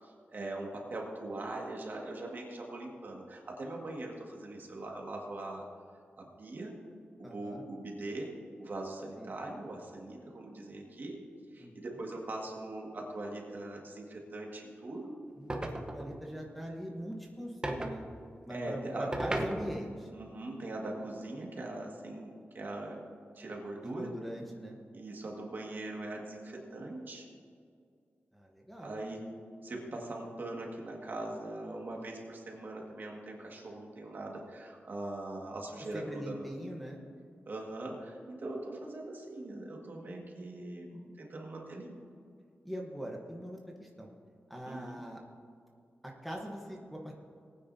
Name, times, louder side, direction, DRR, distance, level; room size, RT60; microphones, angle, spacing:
voice 1, 0.0-5.6 6.2-6.7 7.2-11.2 11.5-15.2 18.5-19.1 20.1-23.0 23.4-24.1 24.9-27.3 28.8-29.2 29.6-36.5 37.5-42.0 44.7-45.0, right 2 dB, 50° right, -1 dB, 1.9 m, -41 dB
voice 2, 7.2-7.7 9.2-9.3 11.6-12.0 15.4-18.0 18.4-20.1 23.8-24.8 28.3-29.0 35.9-37.0 42.6-44.1 44.5-45.2 46.0-47.1, equal, ahead, -1 dB, 1.1 m, -42 dB
sound 1, 15.5-16.2 17.6-18.0 19.1-20.0, right 1 dB, 20° right, 0.9 m, -35 dB
19.5 x 9.4 x 2.8 m, 2.3 s
wide cardioid pair, 150°, 4 cm